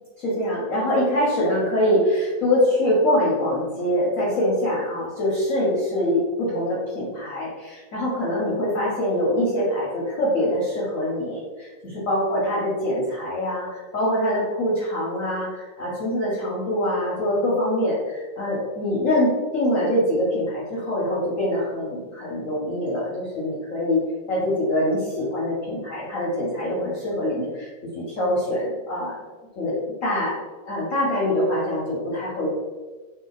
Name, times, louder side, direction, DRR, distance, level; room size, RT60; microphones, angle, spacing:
voice 1, 0.2-24.0 24.3-27.7 27.9-29.2 29.6-29.8 30.0-30.4 30.7-32.5, left 1 dB, 55° left, -6 dB, 0.9 m, -24 dB
3.3 x 2.3 x 3.9 m, 1.3 s
omnidirectional pair, 2.2 m